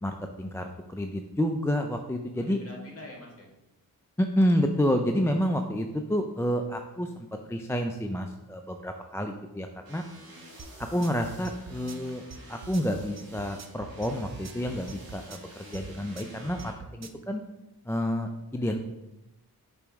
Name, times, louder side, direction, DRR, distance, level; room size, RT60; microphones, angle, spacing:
voice 1, 0.0-2.6 4.2-10.0 10.9-12.2 12.5-17.4 17.9-18.8, equal, 5° left, 4 dB, 0.4 m, -29 dB
voice 2, 2.4-3.5, left 1 dB, 40° left, -3 dB, 2.1 m, -45 dB
sound 1, 9.8-16.7, right 2 dB, 70° right, 1.4 m, -49 dB
sound 2, 10.6-17.2, right 5 dB, 45° right, 0.6 m, -44 dB
6.9 x 3.1 x 4.6 m, 0.94 s
cardioid pair, 60°, 37 cm